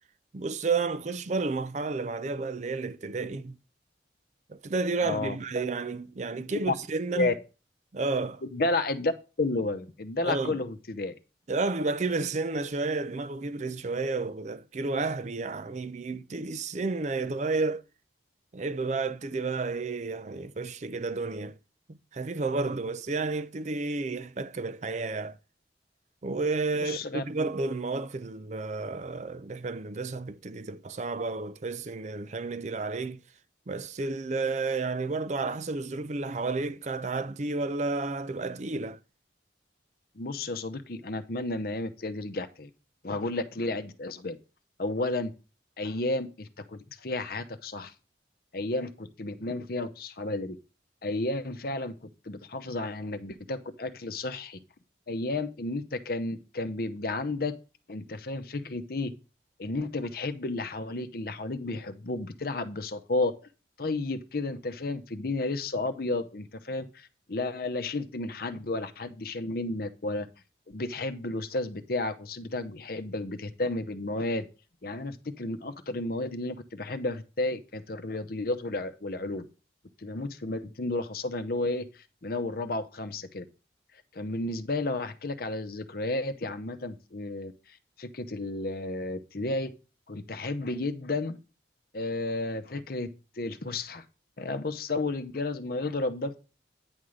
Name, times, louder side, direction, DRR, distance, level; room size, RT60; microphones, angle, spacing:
voice 1, 0.3-3.6 4.5-7.3 7.9-8.4 10.2-10.6 11.5-17.8 18.5-21.6 21.9-25.4 26.2-33.2 33.7-39.0, right 3 dB, 40° right, 0.5 m, -31 dB
voice 2, 5.0-5.4 6.5-6.7 7.1-7.3 8.5-9.1 9.4-11.1 26.8-27.2 40.2-42.7 43.0-44.4 44.8-45.3 45.8-47.9 48.5-50.6 51.0-54.6 55.1-57.5 57.9-59.1 59.6-63.3 63.8-70.3 70.7-74.5 74.8-79.5 80.0-83.4 84.1-87.5 88.0-89.7 90.1-91.4 91.9-94.0 94.4-96.4, left 2 dB, 55° left, 0.8 m, -32 dB
9.7 x 3.7 x 6.3 m
head